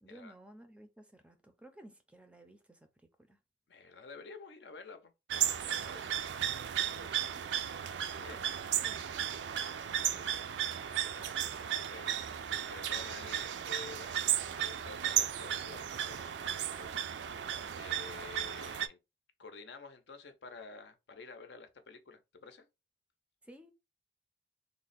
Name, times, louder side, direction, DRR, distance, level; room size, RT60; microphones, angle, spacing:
voice 1, 0.0-2.9 3.2-3.4 8.1-9.2 23.4-23.7, right 1 dB, 5° right, 0.5 m, -56 dB
voice 2, 3.7-5.1 5.5-6.2 6.8-7.3 8.1-8.4 9.6-14.1 14.5-17.0 17.7-19.0 19.4-22.7, left 4 dB, 70° left, 0.6 m, -51 dB
sound 1, 5.3-18.9, right 10 dB, 75° right, 0.4 m, -35 dB
3.4 x 2.1 x 4.0 m
head